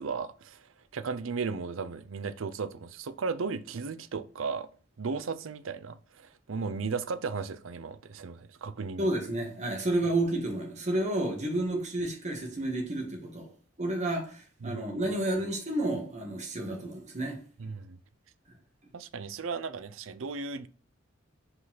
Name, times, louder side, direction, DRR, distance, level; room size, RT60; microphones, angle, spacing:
voice 1, 0.0-4.7 5.0-9.1 14.6-14.8 17.6-18.0 18.9-20.7, right 4 dB, 70° right, 0.5 m, -35 dB
voice 2, 9.0-13.5 13.8-17.4, right 1 dB, 35° right, 1.7 m, -31 dB
5.4 x 4.1 x 5.7 m
head